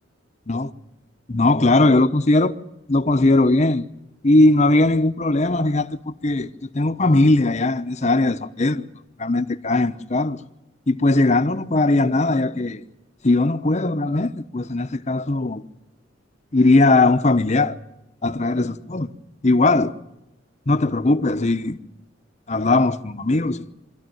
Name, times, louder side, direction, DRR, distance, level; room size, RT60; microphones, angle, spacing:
voice 1, 1.3-2.6 2.9-3.9 4.2-8.9 9.2-10.4 10.9-12.8 13.2-15.6 16.5-17.8 18.2-19.1 19.4-19.9 20.7-21.8 22.5-23.7, left 2 dB, 35° left, 0.9 m, -19 dB
24.5 x 14.0 x 9.1 m
head